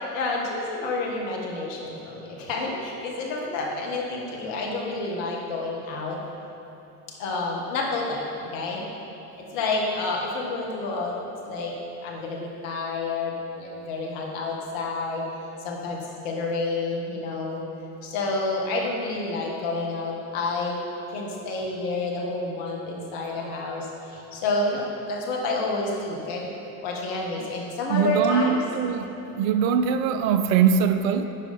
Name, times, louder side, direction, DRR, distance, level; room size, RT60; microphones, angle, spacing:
voice 1, 0.1-6.2 7.2-8.3 8.5-8.8 9.4-11.1 11.5-11.7 12.0-15.3 15.6-17.6 18.0-20.8 21.1-26.5 26.8-28.6 29.2-29.4, left 3 dB, 65° left, -1 dB, 1.4 m, -29 dB
voice 2, 27.9-31.2, right 7 dB, 65° right, 9 dB, 0.5 m, -22 dB
9.8 x 4.9 x 4.0 m, 3.0 s
figure-of-eight pair, 60°, 43 cm